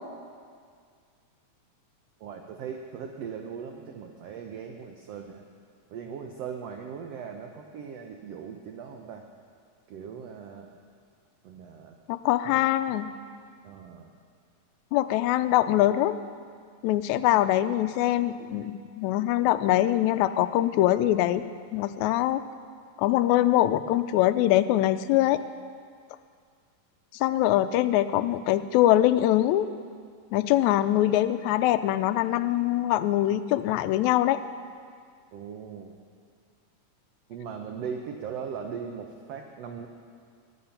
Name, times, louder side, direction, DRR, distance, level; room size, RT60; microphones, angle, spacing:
voice 1, 2.2-5.4 5.9-9.2 9.9-10.7 11.4-12.0 12.4-12.9 13.6-14.1 35.3-35.9 37.3-39.9, right 6 dB, 70° right, 3 dB, 1.5 m, -39 dB
voice 2, 12.1-13.1 14.9-16.2 16.8-21.4 21.7-22.4 23.0-25.4 27.1-29.7 30.3-34.4, left 14 dB, 80° left, 10 dB, 1.7 m, -23 dB
22.0 x 9.5 x 5.7 m, 2.1 s
omnidirectional pair, 3.8 m